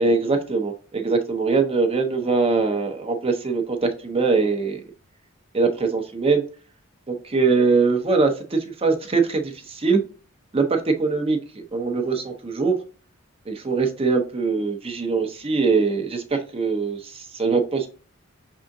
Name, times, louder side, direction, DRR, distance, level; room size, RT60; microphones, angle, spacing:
voice 1, 0.0-4.8 5.5-6.4 7.1-10.0 10.5-11.4 11.7-12.8 13.5-17.9, right 4 dB, 25° right, 5 dB, 0.6 m, -22 dB
5.5 x 3.6 x 2.6 m, 0.39 s
head